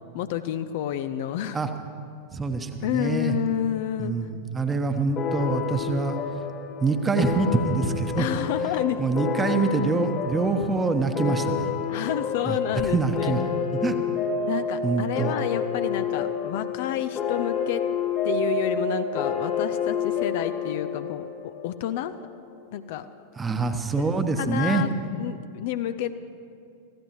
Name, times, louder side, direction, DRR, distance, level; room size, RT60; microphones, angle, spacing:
voice 1, 0.1-1.6 2.8-4.1 8.2-9.0 11.9-13.3 14.5-17.9 18.2-22.1 22.7-23.1 24.0-24.1 24.4-24.9 25.1-26.1, left 11 dB, 50° left, 11 dB, 0.6 m, -29 dB
voice 2, 2.3-3.3 4.0-6.2 6.8-8.3 9.0-11.7 12.5-12.6 12.8-13.4 13.8-14.0 14.8-15.3 23.4-24.8, right 4 dB, 15° right, 7 dB, 1.1 m, -25 dB
sound 1, 5.2-22.3, left 6 dB, 30° left, 1.7 m, -29 dB
27.0 x 15.0 x 3.1 m, 2.5 s
figure-of-eight pair, 90°, 0 cm